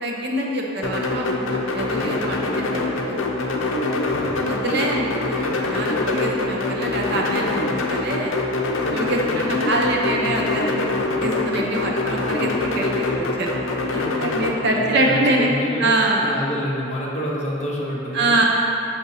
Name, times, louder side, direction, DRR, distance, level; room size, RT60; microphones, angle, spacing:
voice 1, 0.0-3.2 4.4-8.3 8.9-10.9 11.2-15.5 15.8-16.3 18.1-18.4, right 1 dB, 55° right, -1 dB, 0.7 m, -24 dB
sound 1, 0.8-14.5, left 2 dB, 70° left, 0.6 m, -24 dB
voice 2, 3.9-4.4 12.2-12.6 14.3-18.3, equal, 35° left, -4 dB, 0.8 m, -29 dB
6.2 x 5.9 x 2.7 m, 2.8 s
head